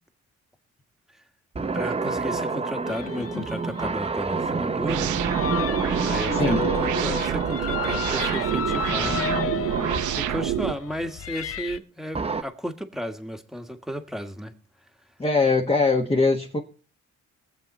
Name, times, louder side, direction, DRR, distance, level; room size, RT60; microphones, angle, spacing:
sound 1, 1.5-10.2 12.1-12.4, right 4 dB, 20° right, 0.8 m, -29 dB
voice 1, 1.7-5.1 6.0-9.4 10.1-14.5, equal, ahead, 1.5 m, -33 dB
sound 2, 2.9-11.8, left 7 dB, 50° left, 0.7 m, -33 dB
sound 3, 4.9-10.7, right 11 dB, 75° right, 0.8 m, -28 dB
voice 2, 6.3-6.6 15.2-16.6, left 3 dB, 20° left, 1.3 m, -21 dB
20.5 x 7.6 x 4.2 m
cardioid pair, 90°, 30 cm